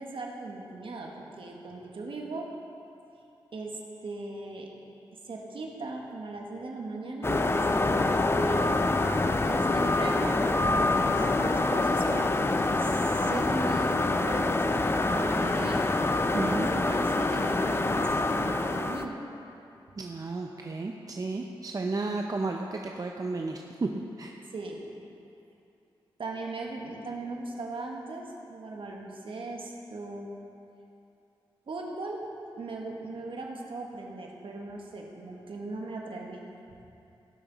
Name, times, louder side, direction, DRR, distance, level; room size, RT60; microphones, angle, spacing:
voice 1, 0.0-2.5 3.5-4.7 5.1-8.7 9.4-14.9 15.1-15.9 16.5-19.2 24.5-24.9 26.2-30.3 31.7-32.2 32.6-36.4, right 2 dB, 65° right, 0 dB, 1.5 m, -38 dB
sound 1, 7.2-19.1, left 2 dB, 25° left, 0.6 m, -26 dB
voice 2, 16.3-16.7 20.0-24.4, right 3 dB, 40° right, 2 dB, 0.6 m, -33 dB
17.0 x 5.9 x 4.0 m, 2.8 s
cardioid pair, 60°, 10 cm